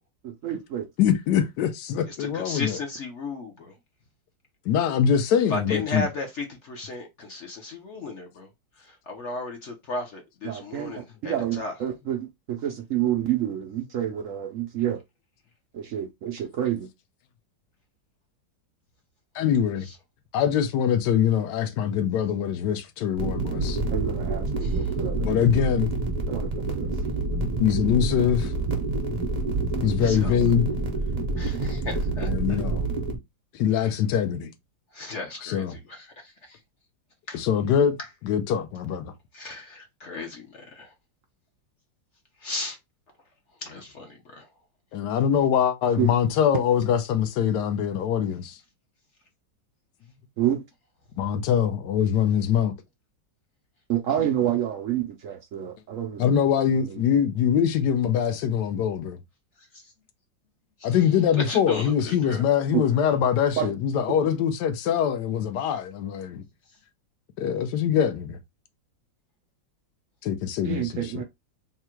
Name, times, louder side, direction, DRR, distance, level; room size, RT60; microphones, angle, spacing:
voice 1, 0.2-0.9 10.4-15.0 15.7-16.9 23.9-25.3 26.3-26.9 29.7-30.1 46.0-46.1 50.4-50.6 53.9-56.4 56.8-57.0 62.7-62.8 63.6-63.7 70.6-71.2, right 11 dB, 80° right, 0.7 m, -28 dB
voice 2, 1.0-2.8 4.7-6.1 19.3-19.9 20.3-23.8 25.2-25.9 27.6-28.5 29.8-30.7 32.2-32.8 33.5-34.5 35.4-35.8 37.3-38.0 38.2-39.1 44.9-48.6 51.2-52.7 56.2-59.2 60.8-66.4 67.4-68.4 70.2-71.2, left 8 dB, 70° left, 1.2 m, -23 dB
voice 3, 2.3-3.7 5.5-8.5 9.1-11.7 24.6-24.7 30.0-30.3 31.4-32.6 34.9-36.0 37.3-37.4 39.3-40.5 40.8-40.9 42.4-42.8 43.6-44.4 61.3-62.4, left 2 dB, 55° left, 0.9 m, -35 dB
sound 1, 23.2-33.2, right 3 dB, 40° right, 0.5 m, -27 dB
3.6 x 2.2 x 4.4 m
omnidirectional pair, 2.0 m